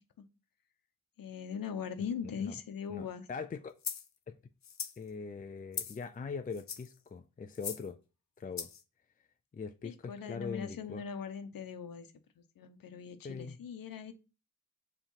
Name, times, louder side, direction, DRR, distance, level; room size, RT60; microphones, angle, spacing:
voice 1, 1.2-3.3 9.8-14.1, left 7 dB, 80° left, 1.0 m, -41 dB
voice 2, 2.0-2.5 2.9-3.7 4.3-4.4 5.0-8.0 8.4-8.7 9.5-11.0 13.2-13.6, left 5 dB, 25° left, 0.4 m, -42 dB
sound 1, 3.8-4.1 4.6-5.0 5.7-6.0 6.5-6.9 7.5-7.9 8.6-8.8, left 7 dB, 55° left, 0.8 m, -39 dB
7.3 x 3.4 x 5.6 m
wide cardioid pair, 140°, 34 cm